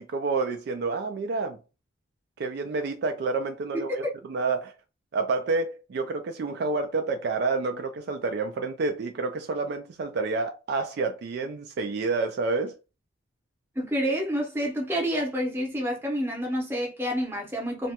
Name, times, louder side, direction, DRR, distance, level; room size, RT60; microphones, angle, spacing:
voice 1, 0.0-1.6 2.4-4.7 5.1-12.7, right 3 dB, 50° right, 0.3 m, -29 dB
voice 2, 3.7-4.1 13.8-17.9, equal, 10° right, 0.7 m, -28 dB
2.9 x 2.2 x 2.8 m
head